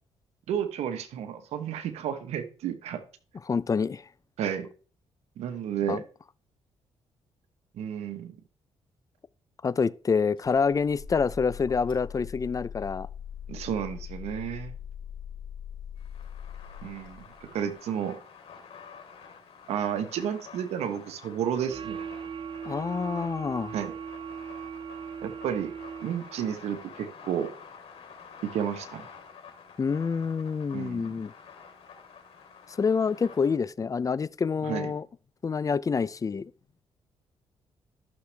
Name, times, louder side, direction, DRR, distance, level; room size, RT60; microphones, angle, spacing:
voice 1, 0.5-3.0 4.4-4.7 5.4-6.0 7.7-8.4 13.5-14.8 16.8-18.2 19.7-22.0 23.7-23.9 25.2-25.7 26.0-27.5 28.4-29.1 30.7-31.1 34.6-34.9, right 9 dB, 85° right, 1.3 m, -32 dB
voice 2, 3.5-4.0 5.9-6.0 9.6-13.1 22.7-23.7 29.8-31.3 32.8-35.1 35.4-36.4, left 5 dB, 30° left, 0.5 m, -27 dB
sound 1, 10.4-17.7, left 8 dB, 50° left, 4.1 m, -42 dB
sound 2, 16.0-33.6, left 6 dB, 70° left, 3.3 m, -49 dB
sound 3, 21.7-26.5, right 7 dB, 50° right, 0.5 m, -39 dB
13.0 x 6.5 x 3.4 m
cardioid pair, 75°, 11 cm